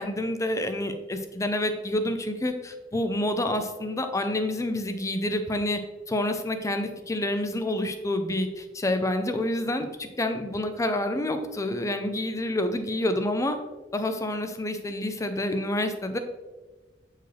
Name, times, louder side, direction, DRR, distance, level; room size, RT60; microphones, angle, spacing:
voice 1, 0.0-5.8 6.1-13.6 13.9-16.2, left 1 dB, 15° left, 7 dB, 0.5 m, -28 dB
7.7 x 4.6 x 3.3 m, 1.2 s
head